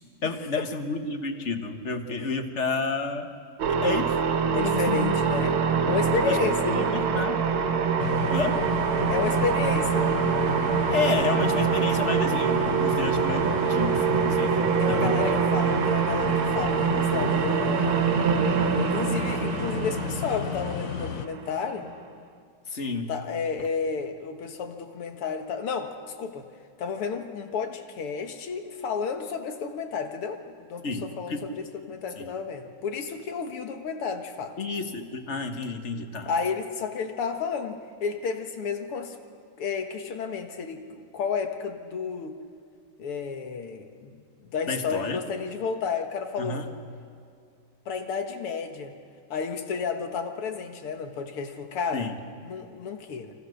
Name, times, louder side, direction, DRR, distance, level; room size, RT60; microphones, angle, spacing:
voice 1, 0.2-3.3 3.7-4.2 4.4-5.2 5.9-7.4 8.3-8.6 10.9-15.4 22.7-23.1 23.6-23.7 30.8-31.5 32.2-32.3 34.6-36.3 44.7-45.2 46.4-46.7 51.9-52.2, left 4 dB, 35° left, 6 dB, 1.6 m, -30 dB
sound 1, 3.6-21.9, right 6 dB, 75° right, 2.3 m, -25 dB
voice 2, 4.5-6.7 8.5-8.7 9.1-10.1 14.8-18.0 18.7-21.9 23.1-26.5 26.8-30.9 31.2-31.4 31.9-34.6 36.3-39.2 39.6-42.4 43.0-44.2 44.5-46.7 47.9-48.9 49.3-52.1 52.4-53.3, left 5 dB, 85° left, 5 dB, 2.5 m, -31 dB
sound 2, 8.0-21.3, left 9 dB, 65° left, 0.8 m, -34 dB
29.0 x 26.0 x 6.5 m, 2.3 s
omnidirectional pair, 2.4 m